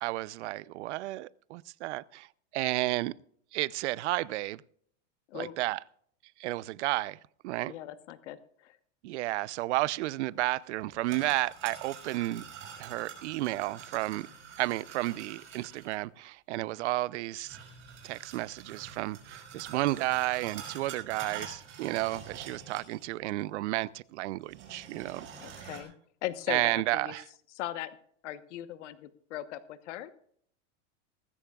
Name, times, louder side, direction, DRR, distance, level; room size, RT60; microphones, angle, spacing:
voice 1, 0.0-2.3 2.5-3.1 3.5-4.6 5.3-5.8 6.4-7.2 7.4-7.7 9.0-12.4 12.8-14.3 14.6-17.6 18.0-25.5 26.5-27.2, right 18 dB, 70° right, 0.7 m, -32 dB
voice 2, 7.7-8.8 25.4-25.9 26.2-27.1 27.5-27.9 28.2-30.1, left 13 dB, 75° left, 1.2 m, -39 dB
sound 1, 10.8-15.9 17.4-23.1 23.4-23.5 24.4-25.8, right 6 dB, 35° right, 5.8 m, -46 dB
19.0 x 16.0 x 2.4 m
supercardioid pair, 135°, 36 cm